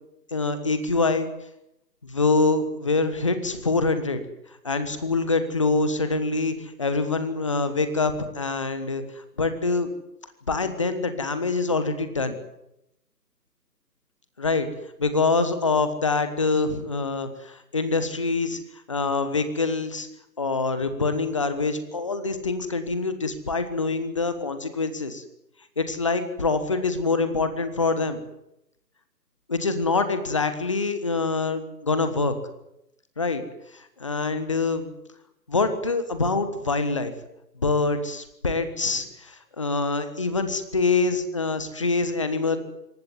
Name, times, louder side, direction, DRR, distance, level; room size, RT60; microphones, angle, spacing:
voice 1, 0.3-1.3 2.0-4.2 4.6-9.0 9.4-9.9 10.5-12.4 14.4-14.7 15.0-18.6 18.9-20.1 20.4-25.2 25.8-28.2 29.5-32.3 33.2-33.4 33.7-34.9 35.5-37.1 37.6-42.6, left 3 dB, 20° left, 10 dB, 1.3 m, -25 dB
26.5 x 15.5 x 9.5 m, 0.84 s
figure-of-eight pair, 155°, 49 cm